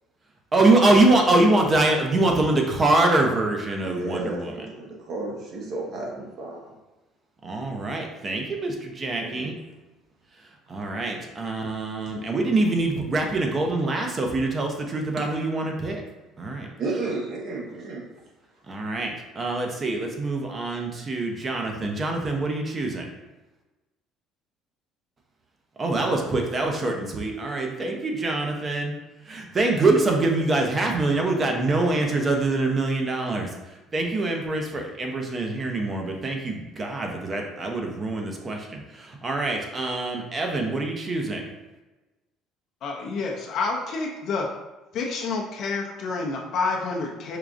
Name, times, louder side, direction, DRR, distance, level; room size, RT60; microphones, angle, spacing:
voice 1, 0.5-4.5 7.4-9.5 10.7-16.0 16.4-16.7 18.7-23.0 25.8-28.9 29.3-33.5 33.9-41.4, right 2 dB, 35° right, 2 dB, 0.7 m, -24 dB
voice 2, 3.8-6.7 9.2-9.5 16.8-18.0, right 2 dB, 60° right, -2 dB, 1.0 m, -32 dB
voice 3, 42.8-44.5 44.9-47.4, left 4 dB, 60° left, 0 dB, 0.5 m, -28 dB
4.6 x 2.3 x 2.5 m, 1.1 s
supercardioid pair, 85°, 0 cm